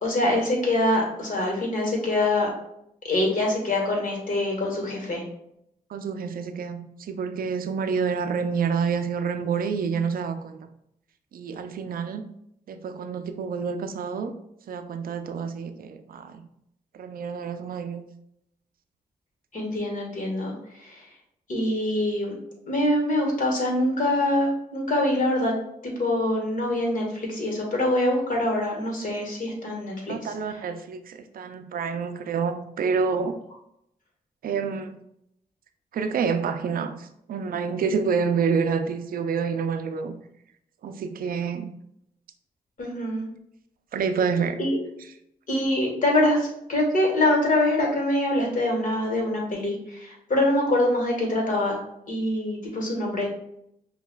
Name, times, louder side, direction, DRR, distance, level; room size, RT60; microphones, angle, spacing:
voice 1, 0.0-2.5 3.0-5.2 19.5-21.1 21.5-22.3 22.7-25.5 25.8-30.3 42.8-43.2 44.6-44.8 45.5-51.7 52.1-53.3, left 1 dB, 55° left, 0 dB, 1.4 m, -24 dB
voice 2, 5.9-10.6 11.3-12.2 12.7-14.3 14.7-16.4 16.9-18.0 30.1-33.3 34.4-35.0 35.9-40.1 40.8-41.7 43.9-44.6, right 6 dB, 65° right, 8 dB, 0.4 m, -28 dB
5.5 x 2.3 x 2.2 m, 0.76 s
cardioid pair, 55°, 16 cm